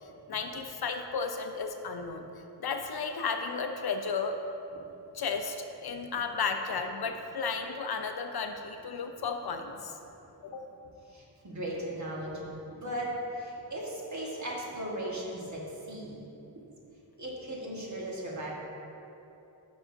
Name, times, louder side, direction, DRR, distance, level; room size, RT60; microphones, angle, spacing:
voice 1, 0.0-2.3 2.6-4.4 5.1-10.0 10.4-10.7, left 5 dB, 60° left, 5 dB, 0.5 m, -34 dB
voice 2, 11.1-16.2 17.2-18.5, right 1 dB, 40° right, -4 dB, 1.4 m, -37 dB
9.5 x 6.1 x 2.6 m, 2.9 s
wide cardioid pair, 105°, 43 cm